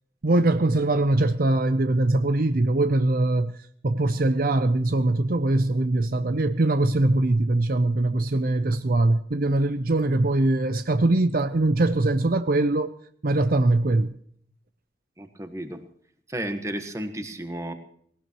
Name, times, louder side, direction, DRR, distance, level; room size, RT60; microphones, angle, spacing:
voice 1, 0.2-3.6 3.8-12.9 13.2-14.2, right 2 dB, 50° right, 0.6 m, -22 dB
voice 2, 15.2-15.8 16.3-17.7, right 1 dB, 15° right, 1.4 m, -33 dB
19.5 x 18.5 x 3.1 m
head